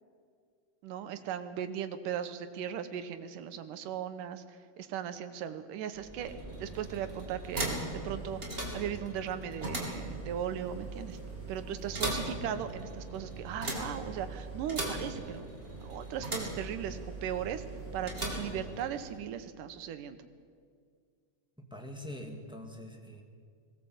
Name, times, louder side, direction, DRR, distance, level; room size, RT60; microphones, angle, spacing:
voice 1, 0.8-6.3 6.6-7.8 8.0-11.2 11.5-15.4 15.8-17.6 17.9-20.2, right 9 dB, 80° right, 10 dB, 2.6 m, -38 dB
sound 1, 5.9-19.2, right 1 dB, 20° right, 3.0 m, -39 dB
voice 2, 21.7-23.2, left 1 dB, ahead, 1 dB, 1.5 m, -44 dB
21.0 x 18.0 x 8.0 m, 2.1 s
omnidirectional pair, 3.8 m